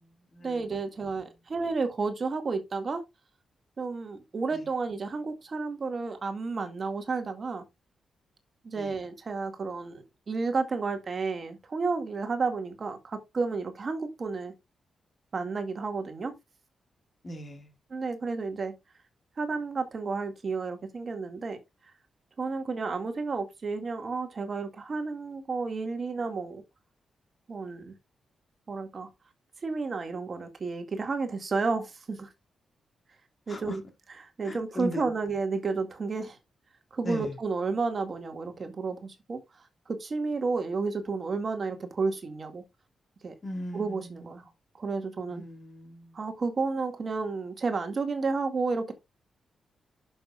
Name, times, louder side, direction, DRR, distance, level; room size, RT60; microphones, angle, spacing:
voice 1, 0.4-3.0 3.8-7.6 8.6-14.5 15.3-16.3 17.9-18.7 19.4-21.6 22.4-26.6 27.5-27.9 28.7-29.1 29.6-32.3 33.5-33.8 34.2-36.4 36.9-39.4 39.9-42.6 43.2-43.3 43.7-44.4 44.7-45.4 46.1-48.9, right 4 dB, 40° right, 2.0 m, -31 dB
voice 2, 17.2-17.7 33.5-33.8 34.4-35.1 37.0-37.3 43.4-44.2 45.3-46.2, left 1 dB, 30° left, 2.1 m, -38 dB
11.0 x 6.9 x 2.4 m
cardioid pair, 105°, 0 cm